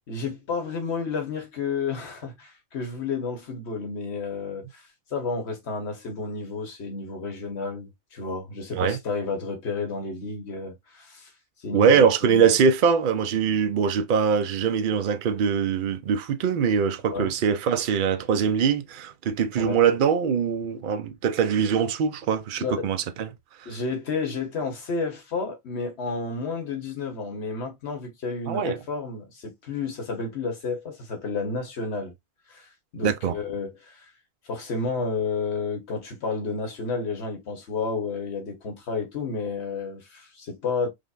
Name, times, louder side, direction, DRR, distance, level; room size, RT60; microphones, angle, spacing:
voice 1, 0.1-4.8 5.1-11.3 11.6-12.5 17.1-17.3 19.6-19.8 22.6-22.8 23.6-32.1 32.5-34.1 34.4-40.9, left 4 dB, 75° left, 1.4 m, -31 dB
voice 2, 11.7-23.3 23.6-23.8 28.5-28.8 33.0-33.4, right 6 dB, 60° right, 0.6 m, -23 dB
5.0 x 2.1 x 2.4 m
omnidirectional pair, 1.1 m